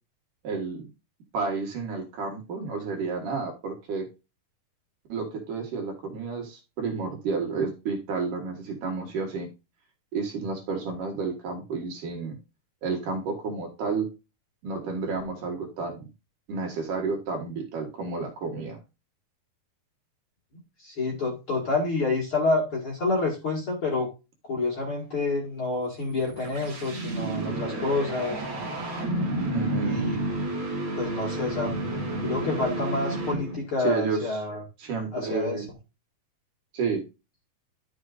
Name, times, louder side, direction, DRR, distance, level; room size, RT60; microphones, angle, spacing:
voice 1, 0.4-0.8 1.3-4.1 5.1-9.5 10.1-12.4 12.8-14.1 14.6-16.1 16.5-18.8 29.5-30.1 33.8-34.4 34.8-35.7 36.7-37.0, right 4 dB, 60° right, 1 dB, 3.1 m, -31 dB
voice 2, 20.8-24.1 24.4-28.4 29.8-30.2 31.0-31.7 32.2-34.6 35.1-35.6, left 3 dB, 40° left, -2 dB, 2.3 m, -28 dB
sound 1, 26.0-33.8, right 1 dB, 45° right, 2.1 m, -31 dB
12.0 x 6.2 x 2.4 m, 0.27 s
omnidirectional pair, 4.4 m